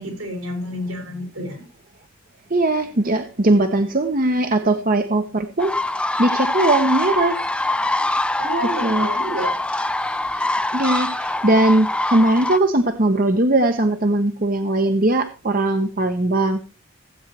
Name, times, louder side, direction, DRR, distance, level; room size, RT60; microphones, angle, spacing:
voice 1, 0.0-1.6 8.4-9.5, equal, 80° right, 3 dB, 5.9 m, -29 dB
voice 2, 2.5-5.7 6.2-7.4 8.8-9.1 10.3-10.4 10.7-16.6, right 2 dB, 40° right, 7 dB, 0.9 m, -19 dB
sound 1, 5.6-12.6, left 2 dB, 5° left, 0.5 m, -24 dB
16.0 x 8.9 x 3.0 m, 0.32 s
head